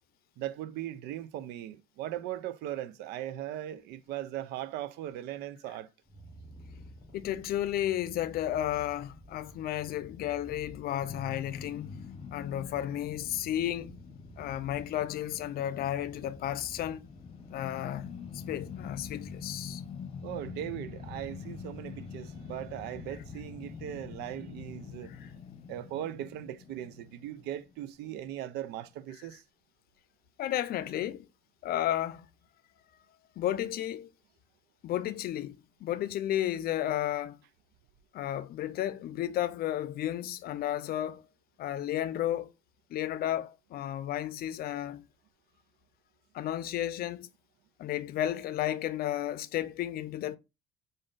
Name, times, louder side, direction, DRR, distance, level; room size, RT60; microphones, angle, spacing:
voice 1, 0.4-5.9 20.2-25.1 25.7-29.4, right 12 dB, 85° right, 0.5 m, -39 dB
Purr, 6.0-25.4, equal, 25° right, 3.0 m, -52 dB
voice 2, 7.1-12.0 12.3-14.0 14.4-17.0 17.5-19.8 25.1-25.3 30.4-31.3 31.6-32.3 33.4-34.1 34.8-37.4 38.1-41.2 41.6-42.5 42.9-45.0 46.3-47.3 47.8-50.4, left 12 dB, 65° left, 0.5 m, -33 dB
sound 1, 11.0-28.2, left 6 dB, 35° left, 0.8 m, -45 dB
5.0 x 2.6 x 3.7 m
cardioid pair, 110°, 17 cm